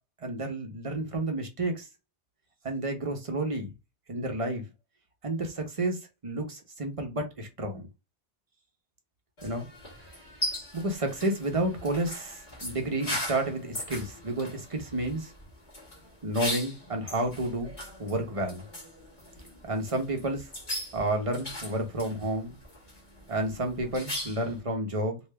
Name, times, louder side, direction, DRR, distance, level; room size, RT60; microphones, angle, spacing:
voice 1, 0.2-1.9 2.6-3.7 4.1-4.6 5.2-7.9 9.4-9.7 10.7-15.3 16.2-17.7 18.0-18.7 19.6-20.5 20.9-22.6 23.3-25.2, right 1 dB, 35° right, 0.8 m, -31 dB
sound 1, 9.4-24.6, left 1 dB, 40° left, 1.7 m, -39 dB
3.4 x 2.6 x 3.2 m
omnidirectional pair, 1.2 m